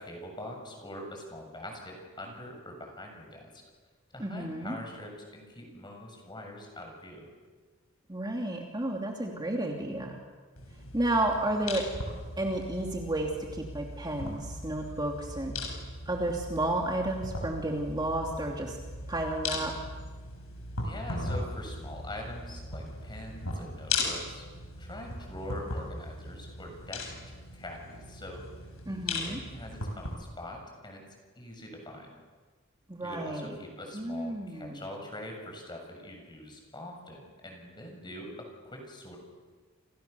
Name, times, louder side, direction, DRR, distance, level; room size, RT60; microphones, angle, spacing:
voice 1, 0.0-3.6 4.1-7.3 20.8-24.5 24.8-28.4 28.9-31.0 31.4-32.1 33.0-39.2, left 1 dB, 20° left, 2 dB, 7.2 m, -43 dB
voice 2, 4.2-4.8 8.1-10.2 10.9-11.8 12.4-15.5 16.1-18.8 19.1-19.7 28.9-29.4 32.9-33.5 33.9-34.8, right 1 dB, 20° right, 1 dB, 2.7 m, -32 dB
sound 1, 10.6-30.1, left 2 dB, 85° left, 7.3 m, -38 dB
29.5 x 29.0 x 7.0 m, 1.4 s
head